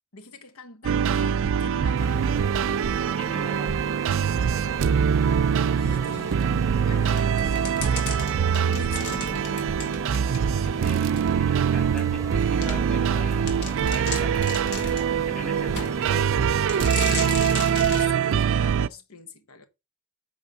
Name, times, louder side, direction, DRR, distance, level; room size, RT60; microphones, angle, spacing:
voice 1, 0.1-2.4 3.3-3.7 5.8-10.0 17.7-19.7, left 4 dB, 85° left, 1.2 m, -44 dB
sound 1, 0.8-18.9, right 7 dB, 65° right, 0.4 m, -23 dB
sound 2, 2.0-16.9, right 1 dB, 15° right, 0.8 m, -39 dB
voice 2, 3.1-3.8 10.6-15.0 15.3-16.3, equal, 5° left, 2.0 m, -41 dB
sound 3, 7.1-10.7 11.2-11.3 12.0-12.1 12.6-12.8 13.2-13.3 13.5-15.1 15.8-16.3 16.7-18.1, left 4 dB, 55° left, 2.1 m, -35 dB
8.8 x 3.5 x 5.6 m
head